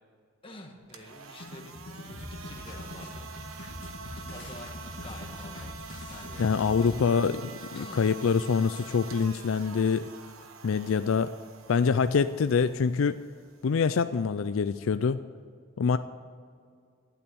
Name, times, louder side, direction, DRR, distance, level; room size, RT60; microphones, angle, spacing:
voice 1, 0.4-3.7 4.3-5.8 6.1-6.5 7.7-8.0, left 1 dB, 25° left, 2 dB, 1.6 m, -48 dB
sound 1, 0.8-14.8, right 4 dB, 80° right, 1.2 m, -46 dB
sound 2, 1.4-7.0, left 1 dB, 55° left, 1.8 m, -42 dB
voice 2, 6.4-10.0 10.6-11.3 11.7-13.2 13.6-15.2 15.8-16.0, left 5 dB, 75° left, 12 dB, 0.4 m, -25 dB
12.0 x 9.6 x 8.4 m, 2.1 s
head